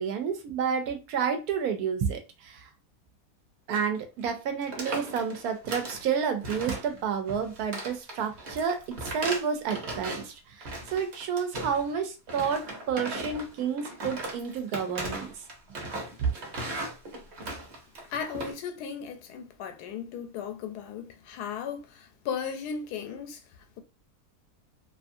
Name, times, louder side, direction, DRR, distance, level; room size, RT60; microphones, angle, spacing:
voice 1, 0.0-2.6 3.7-15.3 16.2-16.3, right 6 dB, 75° right, 1.0 m, -30 dB
sound 1, 3.7-4.4 4.6-6.1 6.4-7.0 7.3-10.3 10.6-11.9 12.3-18.5, right 2 dB, 50° right, 1.0 m, -37 dB
voice 2, 18.1-23.4, left 7 dB, 85° left, 1.2 m, -36 dB
2.8 x 2.4 x 2.5 m
omnidirectional pair, 1.7 m